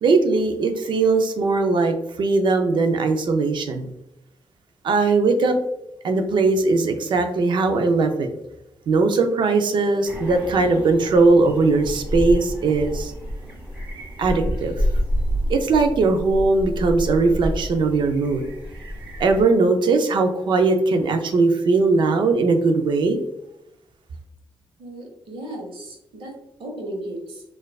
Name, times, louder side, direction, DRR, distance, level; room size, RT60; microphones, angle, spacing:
voice 1, 0.0-3.9 4.8-5.6 6.0-8.3 8.9-13.1 14.2-14.7 15.5-18.4 19.2-23.2, right 3 dB, 60° right, 6 dB, 0.4 m, -19 dB
sound 1, 10.0-19.4, equal, 15° right, 1.3 m, -29 dB
voice 2, 24.8-27.4, right 1 dB, 80° right, 2 dB, 0.9 m, -35 dB
4.3 x 2.4 x 2.3 m, 0.85 s
wide cardioid pair, 155°, 9 cm